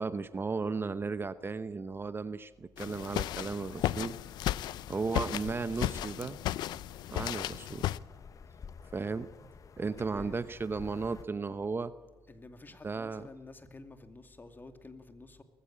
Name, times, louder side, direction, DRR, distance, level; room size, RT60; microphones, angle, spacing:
voice 1, 0.0-4.1 4.9-6.4 7.1-7.9 8.9-9.3 9.8-11.9 12.8-13.2, right 4 dB, 30° right, 13 dB, 0.9 m, -35 dB
sound 1, 2.8-8.0, left 14 dB, 75° left, 0.5 m, -35 dB
sound 2, 3.1-11.3, left 6 dB, 50° left, 1.0 m, -51 dB
voice 2, 9.9-10.4 12.3-15.4, left 2 dB, 25° left, 7 dB, 2.5 m, -51 dB
20.0 x 15.5 x 8.6 m, 1.4 s
supercardioid pair, 65°, 7 cm